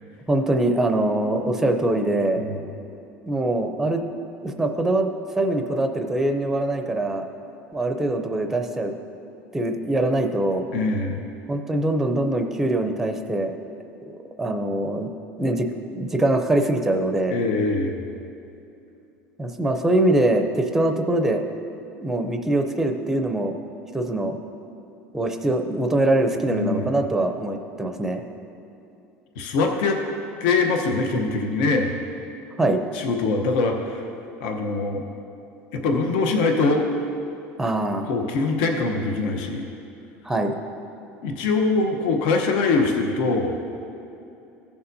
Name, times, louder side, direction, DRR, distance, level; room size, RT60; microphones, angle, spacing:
voice 1, 0.3-2.4 3.3-4.0 4.4-5.1 5.4-7.2 7.7-8.9 9.5-10.6 11.5-13.5 14.4-15.1 15.4-17.4 19.4-21.4 22.0-23.5 23.9-24.4 25.1-28.2 32.6-32.8 37.6-38.1 40.2-40.5, right 1 dB, 5° right, 5 dB, 0.5 m, -23 dB
voice 2, 10.7-11.3 17.3-18.1 26.4-27.0 29.4-30.0 30.4-32.0 32.9-34.0 34.4-35.0 35.7-36.9 38.0-39.7 41.2-43.6, left 3 dB, 80° left, 3 dB, 0.9 m, -23 dB
15.5 x 6.9 x 2.7 m, 2.7 s
cardioid pair, 165°, 5 cm